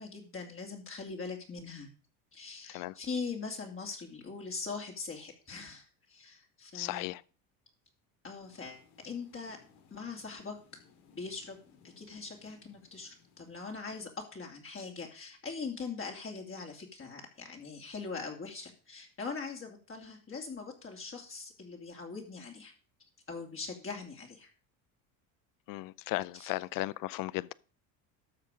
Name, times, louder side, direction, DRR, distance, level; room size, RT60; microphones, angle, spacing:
voice 1, 0.0-1.9 2.3-7.1 8.2-9.6 9.9-10.6 11.1-11.6 11.8-22.7 23.3-24.5 26.3-26.5, left 4 dB, 30° left, 2.6 m, -42 dB
voice 2, 6.7-7.2 25.7-27.5, left 18 dB, 50° left, 0.6 m, -35 dB
sound 1, 8.4-14.0, left 6 dB, 80° left, 2.6 m, -62 dB
12.5 x 6.6 x 5.1 m
supercardioid pair, 95°, 42 cm